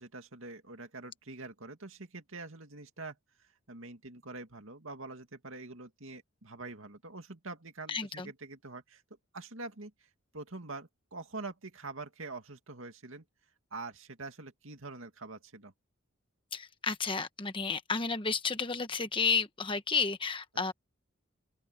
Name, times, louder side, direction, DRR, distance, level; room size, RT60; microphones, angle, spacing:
voice 1, 0.0-3.2 3.7-9.0 9.3-10.1 10.3-13.2 13.7-15.7, right 3 dB, 70° right, 2.4 m, -45 dB
voice 2, 7.9-8.3 16.5-20.7, left 5 dB, 25° left, 1.2 m, -32 dB
open air
head